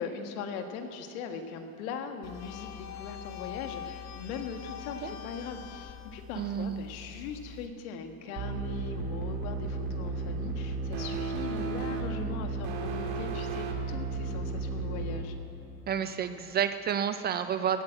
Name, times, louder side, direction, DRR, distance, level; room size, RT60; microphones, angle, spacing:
voice 1, 0.0-15.4, left 6 dB, 70° left, 6 dB, 1.6 m, -40 dB
sound 1, 2.2-7.7, left 8 dB, 40° left, 1.1 m, -43 dB
voice 2, 6.4-6.8 15.9-17.8, right 8 dB, 25° right, 10 dB, 0.3 m, -30 dB
sound 2, 8.4-15.2, right 4 dB, 55° right, 2.2 m, -33 dB
16.5 x 8.8 x 7.6 m, 2.8 s
supercardioid pair, 125°, 43 cm